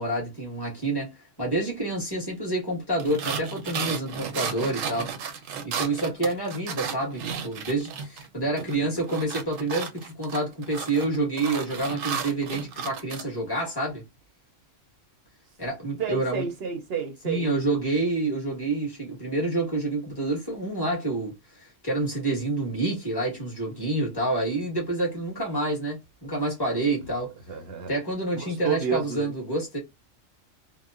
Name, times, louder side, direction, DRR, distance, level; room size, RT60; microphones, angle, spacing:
voice 1, 0.0-5.1 5.6-14.0 15.6-16.4 17.2-27.3 27.9-29.8, right 2 dB, 20° left, 1.3 m, -28 dB
sound 1, 3.0-8.3 8.6-13.2, right 6 dB, 85° right, 1.0 m, -34 dB
voice 2, 8.6-9.0 16.0-17.5 27.5-27.9 28.3-29.3, right 7 dB, 60° right, 0.7 m, -31 dB
2.8 x 2.0 x 2.4 m
omnidirectional pair, 1.3 m